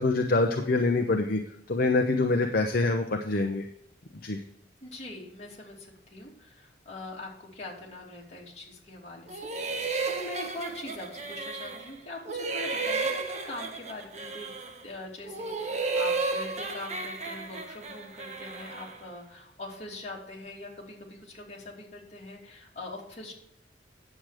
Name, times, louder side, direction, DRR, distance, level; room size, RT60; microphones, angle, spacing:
voice 1, 0.0-1.4 1.7-3.7 4.2-4.4, left 3 dB, 50° left, 4 dB, 0.8 m, -25 dB
voice 2, 4.8-14.5 14.8-23.3, left 2 dB, 35° left, -2 dB, 2.7 m, -42 dB
sound 1, 9.3-11.9 12.2-14.8 15.2-19.0, right 3 dB, 40° right, 1.2 m, -33 dB
9.3 x 7.6 x 5.0 m, 0.74 s
head